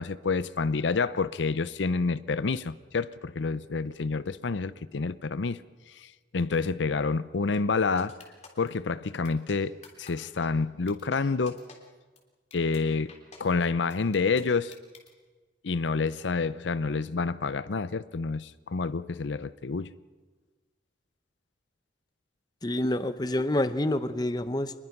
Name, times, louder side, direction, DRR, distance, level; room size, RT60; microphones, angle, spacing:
voice 1, 0.0-5.6 6.3-8.1 8.6-11.6 12.5-13.1 13.4-14.7 15.6-19.9, left 4 dB, 80° left, 0.6 m, -28 dB
sound 1, 8.0-8.7 9.2-9.5 9.8-10.1 10.4-10.5 10.9-11.2 11.5-11.8 12.2-12.3 12.5-12.8 13.1-13.4 13.9-15.1, left 5 dB, 40° left, 3.3 m, -49 dB
voice 2, 22.6-24.7, left 1 dB, 20° left, 0.8 m, -27 dB
26.0 x 21.0 x 6.0 m
head